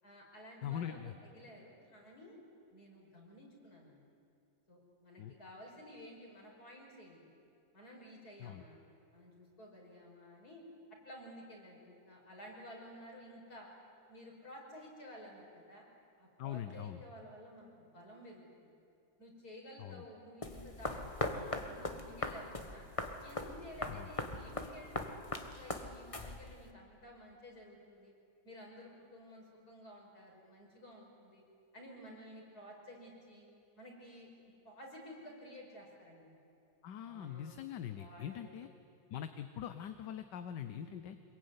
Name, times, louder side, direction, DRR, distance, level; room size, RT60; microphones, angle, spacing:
voice 1, 0.0-2.4 2.7-4.0 4.7-7.2 7.7-10.6 11.0-13.7 14.1-15.9 16.2-18.8 19.2-22.9 23.2-25.1 25.5-28.1 28.4-31.4 31.7-33.5 33.8-34.3 34.6-36.4 37.1-37.5 37.9-38.7 40.7-41.2, equal, 50° left, -1 dB, 6.2 m, -53 dB
voice 2, 0.6-1.1 5.2-5.3 8.4-8.6 16.4-17.0 19.8-20.0 23.9-24.1 36.8-38.7 39.1-41.2, left 10 dB, 70° left, 10 dB, 1.5 m, -42 dB
sound 1, 20.4-26.7, left 2 dB, 20° left, 1.3 m, -40 dB
25.5 x 22.5 x 9.6 m, 2.6 s
omnidirectional pair, 2.1 m